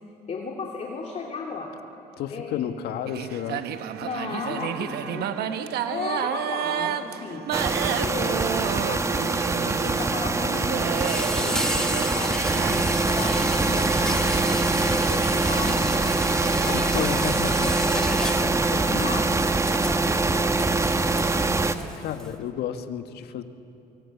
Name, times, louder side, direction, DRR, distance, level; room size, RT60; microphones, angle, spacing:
voice 1, 0.3-1.7 2.3-2.7 4.0-7.4 7.9-8.5 8.9-16.2 16.5-17.1 17.9-19.3, left 4 dB, 40° left, -1 dB, 2.8 m, -35 dB
voice 2, 2.2-3.6 16.7-18.1 22.0-23.4, left 10 dB, 75° left, 8 dB, 1.5 m, -32 dB
sound 1, 3.1-12.8, right 10 dB, 70° right, 1.0 m, -31 dB
sound 2, 7.5-21.8, right 3 dB, 15° right, 1.1 m, -24 dB
Insect, 10.9-22.3, left 1 dB, 5° left, 1.6 m, -34 dB
24.0 x 23.5 x 8.4 m, 2.8 s
cardioid pair, 110°, 17 cm